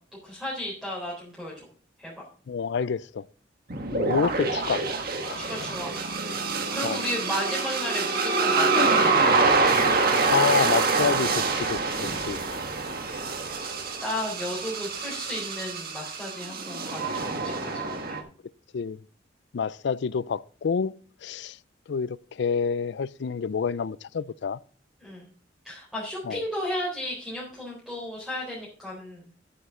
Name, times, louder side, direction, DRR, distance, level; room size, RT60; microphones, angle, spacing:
voice 1, 0.2-1.7 2.0-2.1 5.4-5.9 6.2-6.4 6.7-9.8 14.0-18.2 25.0-25.3 25.6-29.2, left 1 dB, 5° right, 4.0 m, -34 dB
voice 2, 2.5-3.3 3.9-4.8 5.2-5.5 6.8-7.0 10.3-12.4 18.7-19.0 19.5-20.9 21.2-21.6 21.9-24.6 26.2-26.4, left 6 dB, 65° left, 0.4 m, -28 dB
sound 1, 3.7-18.2, right 3 dB, 55° right, 1.6 m, -26 dB
11.5 x 9.3 x 3.7 m
head